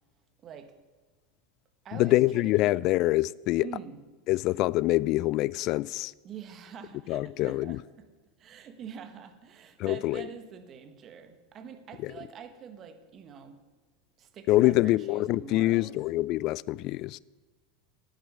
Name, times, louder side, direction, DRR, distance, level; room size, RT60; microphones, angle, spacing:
voice 1, 0.4-0.8 1.8-2.8 3.6-4.0 6.2-8.1 8.4-13.6 14.2-16.0, right 7 dB, 40° right, 1.5 m, -45 dB
voice 2, 1.9-3.7 4.3-6.1 7.1-7.8 9.8-10.2 12.0-12.1 14.5-17.2, left 17 dB, 50° left, 0.3 m, -25 dB
10.5 x 9.2 x 8.0 m
hypercardioid pair, 85°, 0 cm